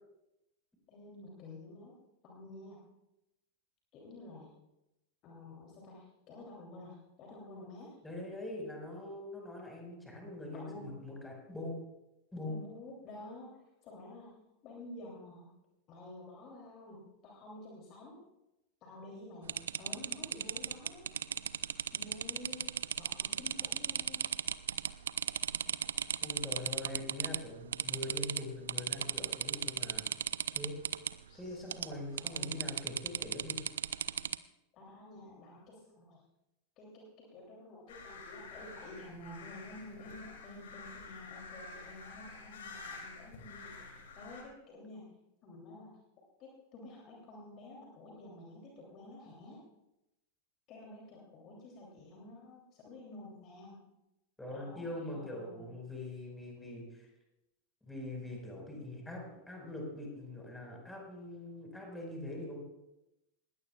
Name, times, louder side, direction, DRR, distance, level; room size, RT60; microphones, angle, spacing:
voice 1, 0.9-1.9 2.2-2.8 3.9-4.5 5.2-8.0 10.5-10.9 12.5-13.5 13.8-14.3 14.6-15.5 15.9-18.2 18.8-21.0 21.9-24.2 31.3-31.6 32.2-32.6 34.7-36.2 36.8-45.1 45.4-45.9 46.4-49.6 50.7-53.8 54.5-55.7, left 2 dB, 35° left, -2 dB, 3.1 m, -50 dB
voice 2, 8.0-11.8 12.3-12.6 26.2-30.0 30.5-30.8 31.3-33.6 54.4-57.1 57.8-62.6, left 1 dB, 5° left, -1 dB, 5.0 m, -43 dB
sound 1, 19.5-27.4 27.7-28.4 28.7-31.1 31.7-31.9 32.2-34.3, right 9 dB, 65° right, 0.4 m, -35 dB
sound 2, 37.9-44.4, left 3 dB, 60° left, 2.9 m, -49 dB
20.5 x 16.5 x 2.4 m, 0.91 s
figure-of-eight pair, 90°, 0 cm